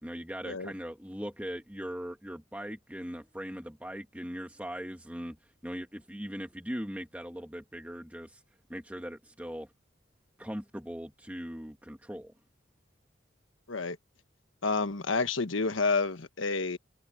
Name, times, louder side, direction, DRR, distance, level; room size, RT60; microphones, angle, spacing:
voice 1, 0.0-5.4 5.6-8.4 8.7-9.7 10.4-12.3, equal, 10° right, 1.8 m, -40 dB
voice 2, 14.6-16.8, left 4 dB, 90° left, 1.4 m, -29 dB
head